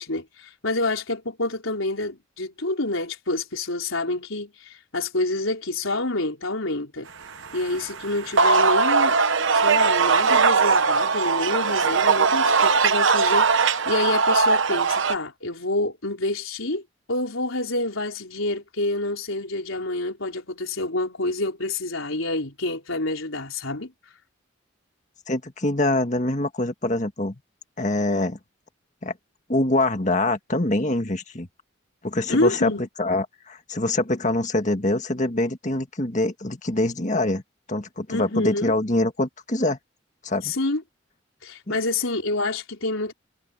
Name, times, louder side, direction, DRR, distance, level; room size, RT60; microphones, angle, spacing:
voice 1, 0.0-7.1 7.5-9.2 9.5-16.8 17.1-23.9 32.3-32.8 38.1-38.7 40.4-40.8 41.4-43.1, left 2 dB, 85° left, 4.3 m, -27 dB
sound 1, 7.4-15.1, right 4 dB, 70° right, 1.0 m, -20 dB
voice 2, 25.3-27.4 27.8-28.4 29.0-29.1 29.5-31.5 32.0-32.7 33.0-37.4 37.7-39.8 40.2-40.5 41.7-41.8, left 2 dB, 35° left, 1.8 m, -24 dB
head